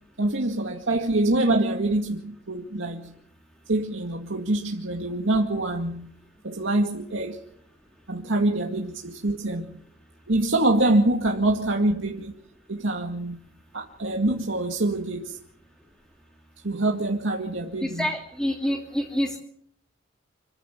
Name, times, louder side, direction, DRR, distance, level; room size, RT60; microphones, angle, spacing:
voice 1, 0.2-3.1 3.7-6.1 6.4-7.4 8.1-9.6 10.3-12.4 12.7-13.4 13.7-15.4 16.6-18.0, right 2 dB, 70° right, 2.2 m, -25 dB
voice 2, 17.8-19.4, equal, 5° left, 2.8 m, -27 dB
26.5 x 15.0 x 8.3 m
head